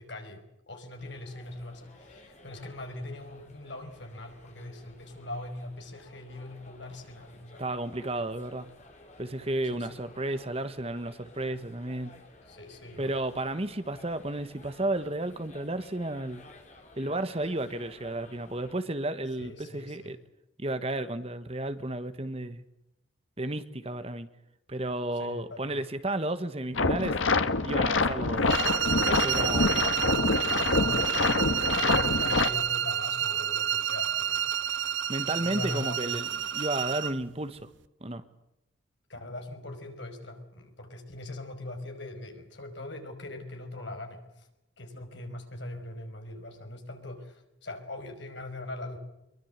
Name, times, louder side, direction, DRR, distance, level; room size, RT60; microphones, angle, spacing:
voice 1, 0.0-7.7 9.7-10.0 12.5-13.1 19.4-20.2 25.2-25.9 29.3-34.8 35.4-36.2 39.1-44.5 44.8-49.0, left 1 dB, 65° left, 5 dB, 5.3 m, -41 dB
sound 1, 1.0-18.7, left 2 dB, 35° left, 4.9 m, -54 dB
voice 2, 7.6-8.7 9.2-12.1 13.0-16.4 17.0-20.2 20.6-22.6 23.4-24.3 24.7-27.2 27.6-28.4 29.1-29.7 35.1-37.6 38.0-38.2, right 1 dB, 30° right, 11 dB, 1.3 m, -32 dB
sound 2, 26.8-32.5, left 3 dB, 85° left, 1.4 m, -26 dB
sound 3, 28.5-37.2, right 9 dB, 70° right, 0.9 m, -29 dB
24.0 x 23.0 x 8.1 m, 0.88 s
head